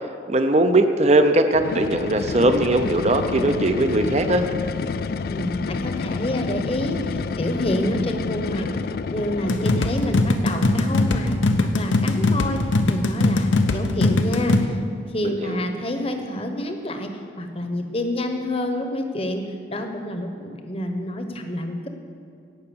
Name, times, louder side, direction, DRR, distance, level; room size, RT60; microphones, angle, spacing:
voice 1, 0.3-4.5 15.2-15.6, right 2 dB, 35° right, 8 dB, 0.6 m, -19 dB
sound 1, 1.5-10.3, left 4 dB, 50° left, 0.3 m, -29 dB
voice 2, 5.3-14.8 15.1-17.1 17.4-19.4 19.7-21.9, left 1 dB, 30° left, 5 dB, 0.9 m, -28 dB
sound 2, 9.5-14.7, left 2 dB, 85° left, 0.8 m, -21 dB
17.0 x 5.8 x 7.1 m, 2.5 s
head